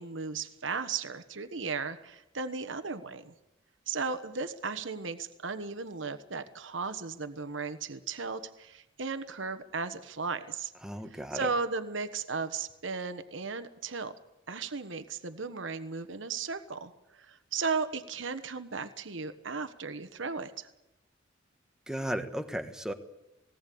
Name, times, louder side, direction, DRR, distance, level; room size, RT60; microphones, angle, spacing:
voice 1, 0.0-3.3 3.9-10.7 11.3-14.1 14.5-20.7, right 4 dB, 75° right, 11 dB, 1.2 m, -35 dB
voice 2, 10.8-11.5 21.9-22.9, equal, 5° right, 7 dB, 1.4 m, -35 dB
19.0 x 18.5 x 8.5 m, 0.90 s
head